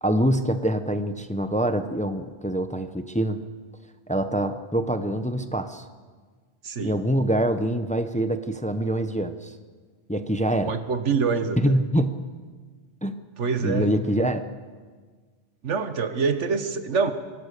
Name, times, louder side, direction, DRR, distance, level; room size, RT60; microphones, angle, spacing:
voice 1, 0.0-3.4 4.1-5.8 6.8-9.5 10.1-10.8 11.6-12.2 13.0-13.1 13.6-14.4, right 1 dB, 5° left, 9 dB, 0.8 m, -25 dB
voice 2, 6.6-7.0 10.7-11.8 13.4-14.0 15.6-17.1, right 5 dB, 90° right, 9 dB, 1.6 m, -25 dB
24.0 x 17.5 x 6.7 m, 1.5 s
omnidirectional pair, 1.2 m